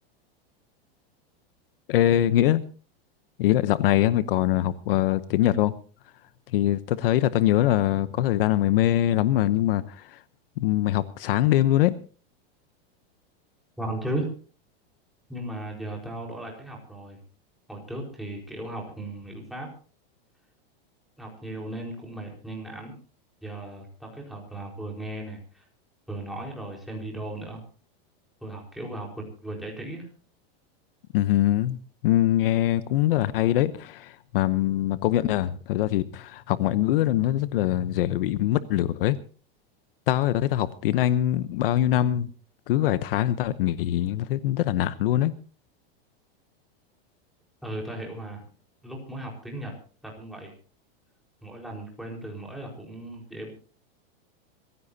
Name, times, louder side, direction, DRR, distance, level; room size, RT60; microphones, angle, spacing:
voice 1, 1.9-2.6 3.4-5.7 6.5-10.2 10.6-11.9 31.1-31.8 32.0-39.2 40.1-42.3 42.7-45.3, left 13 dB, 65° left, 0.9 m, -23 dB
voice 2, 13.8-14.3 15.3-17.2 17.7-19.7 21.2-22.9 23.4-25.6 26.1-27.6 28.4-30.1 47.6-48.4 48.8-49.7 50.0-50.5 51.4-53.5, right 1 dB, ahead, 4.5 m, -36 dB
26.0 x 15.5 x 2.8 m
supercardioid pair, 165°, 31 cm